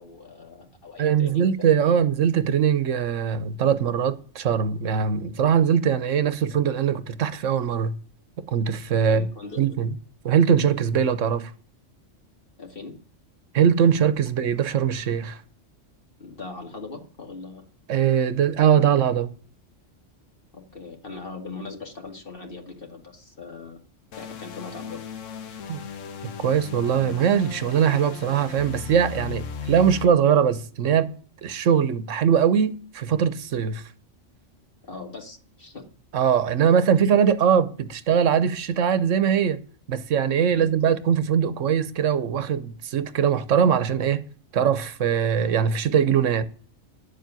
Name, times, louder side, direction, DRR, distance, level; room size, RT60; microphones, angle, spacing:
voice 1, 0.0-1.7 8.9-9.6 12.6-13.0 16.2-17.6 20.5-23.8 24.1-25.0 25.4-25.6 34.8-35.9 40.5-40.7, left 3 dB, 45° left, 2.4 m, -40 dB
voice 2, 1.0-8.0 8.5-9.3 9.6-9.9 10.2-11.5 13.5-15.4 17.9-19.3 25.7-25.8 26.2-31.1 31.4-33.9 36.1-39.6 39.9-44.2 44.5-46.4, right 8 dB, 80° right, 1.3 m, -21 dB
sound 1, 24.1-30.0, left 7 dB, 80° left, 1.3 m, -37 dB
11.0 x 7.4 x 9.1 m
omnidirectional pair, 1.3 m